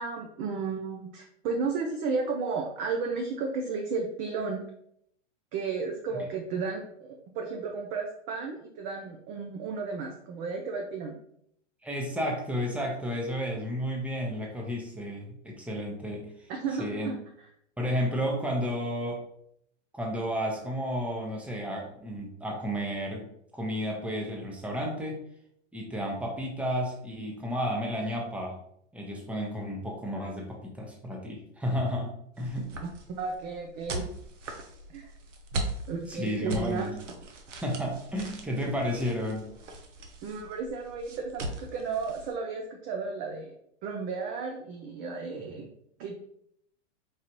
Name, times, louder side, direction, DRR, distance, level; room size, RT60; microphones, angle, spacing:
voice 1, 0.0-4.6 5.5-11.2 16.5-17.2 32.8-34.1 34.9-35.1 35.9-36.9 40.2-43.5 43.8-45.7 46.0-46.2, right 4 dB, 25° right, 1 dB, 0.3 m, -33 dB
voice 2, 11.8-16.5 16.8-17.1 17.8-19.2 19.9-25.2 25.7-28.6 28.9-32.1 32.4-32.7 36.1-37.0 37.6-39.5, equal, 5° right, 0 dB, 0.7 m, -32 dB
sound 1, 32.4-42.4, right 2 dB, 80° right, 0.8 m, -40 dB
4.6 x 2.4 x 2.9 m, 0.72 s
hypercardioid pair, 105°, 37 cm